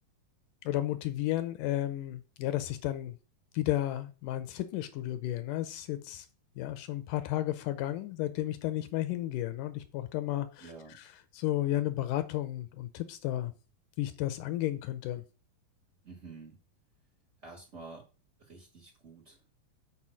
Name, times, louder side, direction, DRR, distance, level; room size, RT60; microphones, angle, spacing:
voice 1, 0.6-3.2 3.5-6.3 6.6-13.5 14.0-15.2, left 14 dB, 80° left, 11 dB, 2.0 m, -33 dB
voice 2, 10.6-11.0 16.0-16.6 17.4-18.0 18.4-19.5, right 3 dB, 70° right, 0 dB, 0.6 m, -49 dB
5.6 x 4.6 x 6.1 m, 0.34 s
omnidirectional pair, 3.9 m